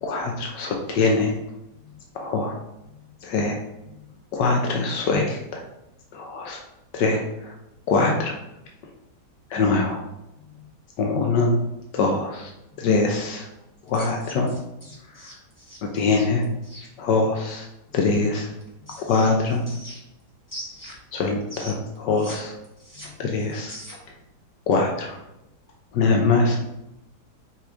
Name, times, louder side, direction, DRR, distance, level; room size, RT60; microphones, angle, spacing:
voice 1, 0.0-1.3 2.1-2.5 3.2-3.6 4.3-5.6 6.1-6.6 6.9-7.2 7.9-8.3 9.5-10.0 11.0-11.5 11.9-12.5 12.8-13.5 13.9-14.5 15.9-16.4 17.0-17.6 17.9-18.5 18.9-19.6 21.1-22.5 23.2-23.8 24.7-25.2 25.9-26.6, left 3 dB, 85° left, 1 dB, 1.5 m, -23 dB
sound 1, 13.9-16.9 18.3-20.2 20.5-22.4 22.6-24.2, equal, 10° left, 1.8 m, -42 dB
5.9 x 4.9 x 3.7 m, 0.91 s
omnidirectional pair, 1.8 m